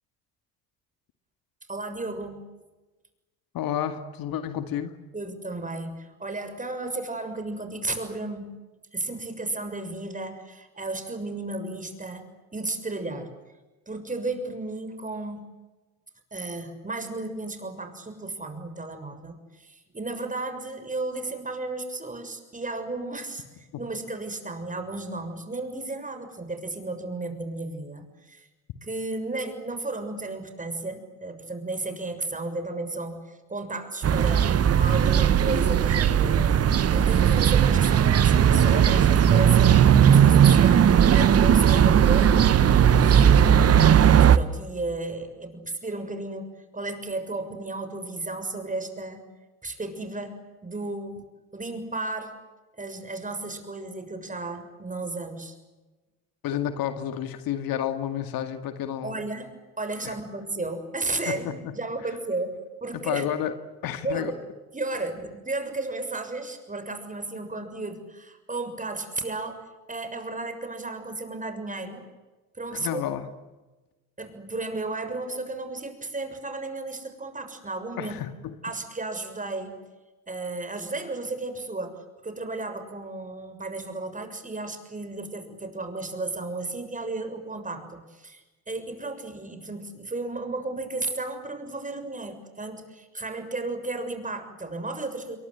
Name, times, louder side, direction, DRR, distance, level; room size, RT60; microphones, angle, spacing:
voice 1, 1.7-2.4 5.1-8.6 8.9-13.3 13.9-15.4 16.3-23.4 23.8-28.5 28.8-36.6 36.9-43.9 44.2-49.2 49.6-51.2 51.5-52.4 52.7-55.5 59.0-59.5 59.8-62.5 62.8-63.3 64.0-64.4 64.7-72.1 72.5-73.0 74.2-78.1 78.6-79.7 80.3-95.4, right 2 dB, 20° right, 8 dB, 6.8 m, -34 dB
voice 2, 3.5-5.0 56.4-59.2 60.0-60.1 61.3-61.7 62.9-63.5 63.8-64.3 72.7-73.3 78.0-78.6, left 10 dB, 55° left, 9 dB, 2.2 m, -30 dB
sound 1, 34.0-44.4, right 9 dB, 35° right, 1.3 m, -17 dB
28.5 x 23.0 x 8.1 m, 1.2 s
hypercardioid pair, 65°, 41 cm